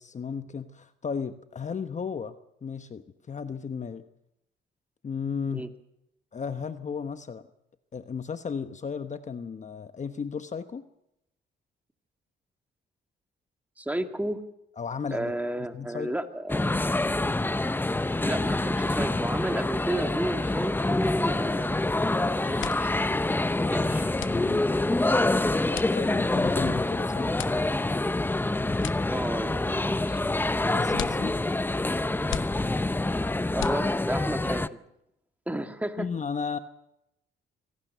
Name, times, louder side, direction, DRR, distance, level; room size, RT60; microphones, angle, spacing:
voice 1, 0.0-2.3 2.6-4.1 5.0-5.7 6.3-7.5 7.9-10.8 14.8-15.3 15.7-16.1 23.6-23.7 24.3-24.7 25.7-27.3 30.7-31.3 36.0-36.6, left 6 dB, 35° left, 10 dB, 1.1 m, -34 dB
voice 2, 13.8-14.4 15.1-16.9 18.2-23.0 23.7-24.1 29.1-30.2 33.5-34.8 35.5-36.1, right 1 dB, 5° right, 6 dB, 2.4 m, -33 dB
sound 1, 16.5-34.7, left 2 dB, 10° left, 0.7 m, -26 dB
sound 2, 22.6-34.3, left 12 dB, 80° left, 1.0 m, -41 dB
25.5 x 18.0 x 6.8 m, 0.83 s
cardioid pair, 90°, 20 cm